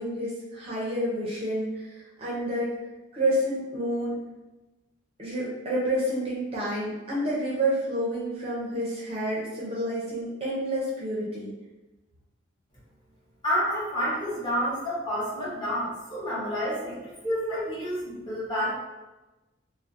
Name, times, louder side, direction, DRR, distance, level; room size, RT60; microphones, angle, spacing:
voice 1, 0.0-2.7 3.1-4.2 5.2-11.5, right 1 dB, 30° right, -6 dB, 0.5 m, -29 dB
voice 2, 13.4-17.0 17.2-18.7, equal, 25° left, -10 dB, 0.9 m, -29 dB
2.5 x 2.0 x 2.4 m, 1.1 s
head